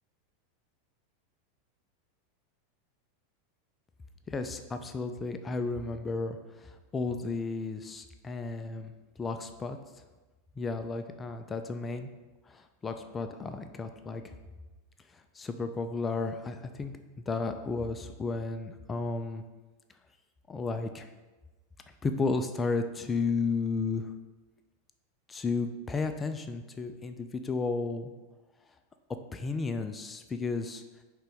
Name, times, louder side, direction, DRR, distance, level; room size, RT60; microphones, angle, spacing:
voice 1, 4.3-8.9 9.2-9.8 10.6-12.1 12.5-14.2 15.1-16.9 17.3-19.4 20.5-21.1 22.0-24.1 25.3-28.1 29.3-30.8, left 4 dB, 20° left, 7 dB, 0.5 m, -33 dB
9.4 x 3.9 x 3.5 m, 1.2 s
hypercardioid pair, 110°, 0 cm